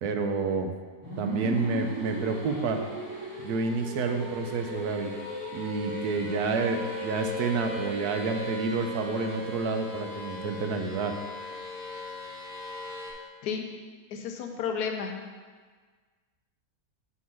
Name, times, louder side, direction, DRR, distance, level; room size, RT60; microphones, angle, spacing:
voice 1, 0.0-0.7 1.2-2.8 3.4-5.1 5.5-11.1, right 4 dB, 80° right, 5 dB, 1.2 m, -29 dB
sound 1, 1.0-13.1, equal, 5° right, 1.8 m, -37 dB
voice 2, 14.1-15.1, left 6 dB, 90° left, 4 dB, 1.3 m, -32 dB
6.1 x 3.8 x 6.0 m, 1.5 s
omnidirectional pair, 1.6 m